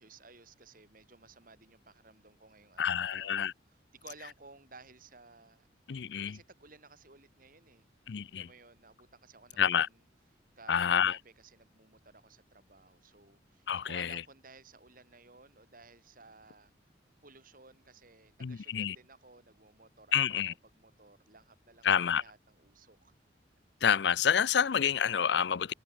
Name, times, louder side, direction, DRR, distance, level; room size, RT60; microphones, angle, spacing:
voice 1, 0.0-3.4 3.9-5.7 6.3-7.9 8.3-10.0 10.6-16.7 17.2-23.1, right 3 dB, 50° right, 5.2 m, -56 dB
voice 2, 2.8-3.5 5.9-6.4 8.1-8.5 9.6-9.9 10.7-11.2 13.7-14.2 18.4-19.0 20.1-20.5 21.8-22.2 23.8-25.7, left 8 dB, 65° left, 0.5 m, -28 dB
head